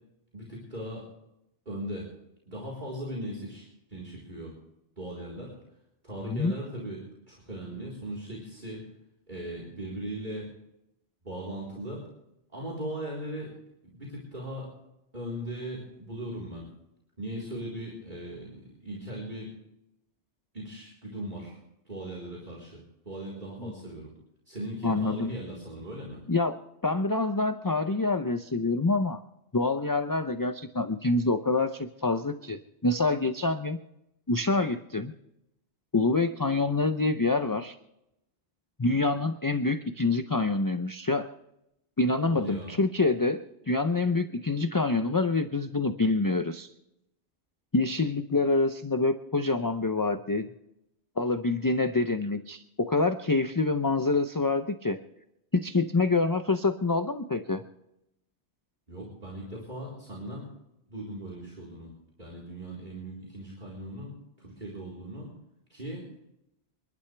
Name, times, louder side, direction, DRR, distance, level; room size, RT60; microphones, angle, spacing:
voice 1, 0.3-1.0 1.7-2.1 2.4-4.5 5.0-5.5 6.0-7.0 7.3-8.9 9.3-10.5 11.2-12.0 12.5-13.5 13.8-14.7 15.1-16.7 17.2-19.5 20.5-21.6 21.9-22.8 23.0-24.1 24.5-26.2 42.3-42.7 58.9-60.4 60.9-61.9 62.2-65.3 65.7-66.1, right 1 dB, 45° right, -4 dB, 4.3 m, -38 dB
voice 2, 24.8-25.3 26.3-26.5 26.8-29.2 29.5-33.8 34.3-35.1 35.9-37.8 38.8-41.3 42.0-46.7 47.7-50.5 51.2-55.0 55.5-57.6, left 3 dB, 25° left, 9 dB, 0.6 m, -26 dB
28.0 x 12.0 x 3.4 m, 0.84 s
omnidirectional pair, 1.1 m